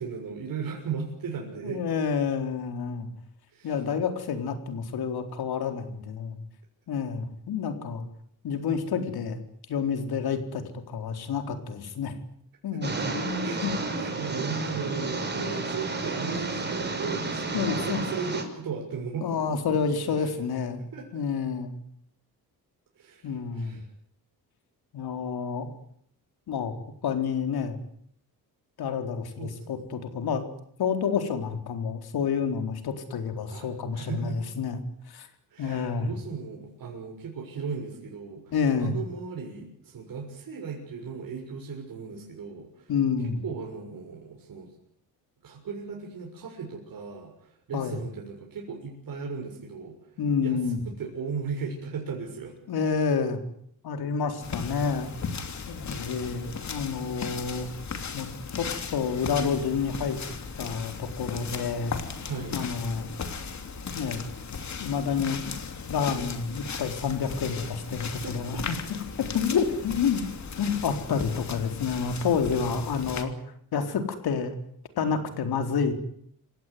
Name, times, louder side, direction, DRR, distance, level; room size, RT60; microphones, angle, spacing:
voice 1, 0.0-1.8 3.5-3.7 12.7-13.1 13.4-19.4 20.2-20.3 20.9-21.2 22.9-23.9 29.4-29.7 33.5-34.4 35.5-38.5 38.8-42.9 43.2-44.7 45.4-50.0 50.4-52.5 62.2-62.6 68.2-68.6, right 5 dB, 65° right, 0 dB, 6.7 m, -37 dB
voice 2, 1.6-3.1 3.6-6.4 6.9-8.1 8.4-9.4 9.7-12.1 12.6-13.7 17.5-18.0 19.2-20.8 21.1-21.7 23.2-23.8 24.9-25.7 26.5-26.7 27.0-27.8 28.8-30.4 30.8-34.8 35.1-35.3 35.6-36.1 38.5-39.0 42.9-43.4 47.7-48.0 50.2-50.8 52.7-53.4 53.8-55.1 55.7-57.7 58.1-58.3 58.6-60.2 60.6-61.9 62.5-63.1 63.9-64.3 64.8-65.5 65.9-68.8 69.2-70.3 70.6-73.3 73.7-74.5 75.0-75.9, left 6 dB, 80° left, 6 dB, 4.2 m, -29 dB
sound 1, 12.8-18.4, right 3 dB, 30° right, 4.8 m, -31 dB
sound 2, 54.4-73.2, left 5 dB, 45° left, 3.1 m, -37 dB
27.5 x 17.5 x 9.7 m, 0.68 s
wide cardioid pair, 140°, 37 cm